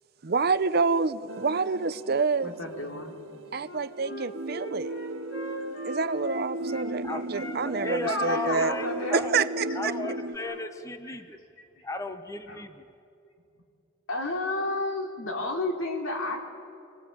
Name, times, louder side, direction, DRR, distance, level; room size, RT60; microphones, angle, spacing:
voice 1, 0.2-2.5 3.5-4.9 5.9-8.7 9.1-9.9, right 4 dB, 50° right, 14 dB, 0.6 m, -27 dB
sound 1, 1.3-10.4, right 1 dB, 80° right, 1.0 m, -36 dB
voice 2, 2.4-3.1 7.1-7.2 8.0-9.2 11.0-11.1 12.5-12.6 14.1-16.4, left 2 dB, 85° left, 2 dB, 3.0 m, -31 dB
Wind instrument woodwind instrument, 3.6-6.9 7.3-10.7, left 1 dB, 60° left, 3.4 m, -40 dB
voice 3, 7.0-9.5 9.7-11.4 11.8-12.9, left 2 dB, 15° left, 8 dB, 0.9 m, -35 dB
26.0 x 19.5 x 8.8 m, 2.6 s
head